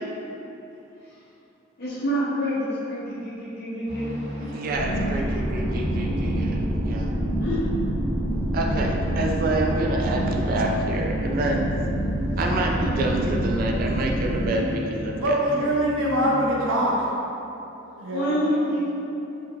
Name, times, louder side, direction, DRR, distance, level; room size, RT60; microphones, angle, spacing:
voice 1, 1.8-4.2 7.4-7.6 12.3-13.0 14.5-14.7 16.2-16.4 18.1-18.9, equal, 55° left, -8 dB, 0.8 m, -28 dB
sound 1, 3.9-16.6, equal, 10° right, 0.9 m, -37 dB
voice 2, 4.5-7.1 8.5-11.7 12.4-15.7, right 2 dB, 45° right, 1 dB, 0.3 m, -28 dB
sound 2, 4.7-14.5, right 1 dB, 30° left, 1.0 m, -26 dB
voice 3, 15.2-16.9 17.9-18.3, right 1 dB, 85° right, -4 dB, 0.6 m, -23 dB
3.6 x 2.7 x 2.3 m, 2.9 s
head